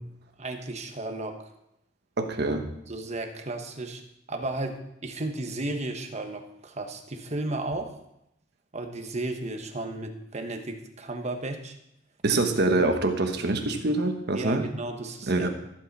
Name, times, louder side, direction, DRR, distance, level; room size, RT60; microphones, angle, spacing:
voice 1, 0.4-1.5 2.9-4.0 4.3-8.0 8.7-11.7 14.3-15.5, right 2 dB, 35° right, 5 dB, 1.2 m, -34 dB
voice 2, 2.2-2.7 12.2-14.7 15.3-15.5, right 2 dB, 60° right, 5 dB, 1.3 m, -25 dB
15.0 x 8.5 x 4.2 m, 0.80 s
head